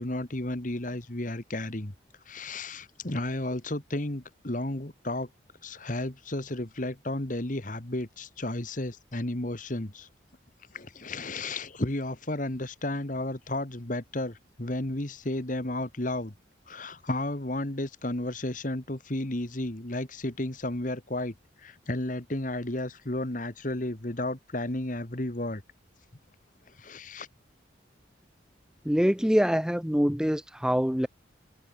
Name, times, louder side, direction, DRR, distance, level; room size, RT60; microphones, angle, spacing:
voice 1, 0.0-1.9 2.3-5.3 5.6-10.1 10.7-16.3 16.7-21.3 21.6-25.6 26.8-27.3, left 1 dB, 45° left, 1.8 m, -33 dB
voice 2, 28.8-31.1, equal, 5° right, 0.7 m, -24 dB
head